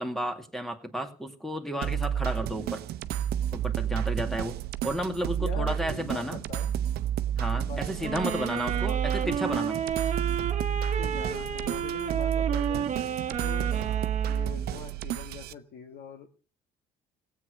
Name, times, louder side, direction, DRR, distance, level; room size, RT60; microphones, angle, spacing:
voice 1, 0.0-2.8 3.5-4.6 4.8-6.4 7.4-9.8, equal, ahead, 6 dB, 2.2 m, -32 dB
sound 1, 1.8-15.5, right 10 dB, 70° right, 0.8 m, -31 dB
voice 2, 5.3-6.8 7.5-8.8 9.7-9.9 10.9-12.9 13.3-16.3, left 7 dB, 65° left, 2 dB, 1.9 m, -43 dB
sound 2, 8.0-14.6, right 8 dB, 45° right, 1.3 m, -31 dB
16.5 x 8.4 x 6.3 m, 0.37 s
cardioid pair, 110°, 17 cm